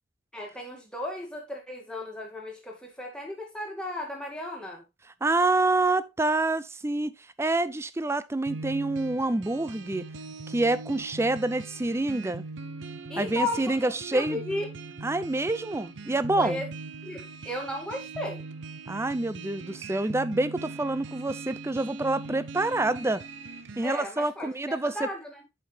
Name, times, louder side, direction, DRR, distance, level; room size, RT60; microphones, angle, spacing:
voice 1, 0.3-4.8 13.1-14.7 16.4-16.7 17.0-18.4 23.8-25.4, left 1 dB, 5° left, 2.1 m, -35 dB
voice 2, 5.2-7.1 7.4-10.1 10.5-12.4 13.2-14.4 15.0-16.6 18.9-23.2 23.8-25.0, right 2 dB, 15° right, 0.4 m, -27 dB
sound 1, 8.5-23.8, right 3 dB, 65° right, 0.6 m, -41 dB
8.1 x 5.5 x 3.3 m
head